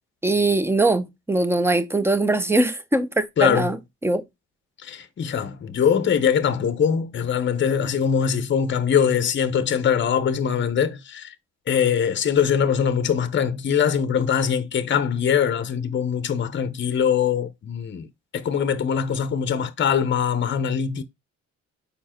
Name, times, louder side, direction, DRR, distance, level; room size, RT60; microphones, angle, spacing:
voice 1, 0.2-4.2, right 2 dB, 10° right, 0.9 m, -21 dB
voice 2, 3.4-3.7 4.8-11.3 11.7-18.1 18.3-21.0, left 7 dB, 40° left, 0.8 m, -22 dB
5.2 x 4.6 x 4.3 m
cardioid pair, 90°, 30 cm